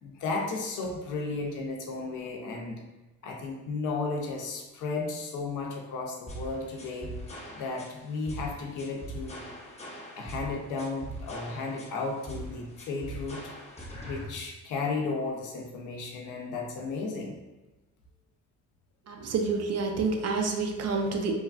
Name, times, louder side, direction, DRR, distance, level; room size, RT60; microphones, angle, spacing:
voice 1, 0.0-2.8 3.2-7.1 7.5-9.5 10.2-13.4 14.0-17.4, left 3 dB, 85° left, 1 dB, 0.6 m, -34 dB
sound 1, 6.3-14.3, right 1 dB, 20° left, 0.6 m, -41 dB
voice 2, 19.1-21.3, right 4 dB, 55° right, 3 dB, 0.5 m, -28 dB
3.1 x 2.2 x 2.4 m, 1.1 s
cardioid pair, 90°, 30 cm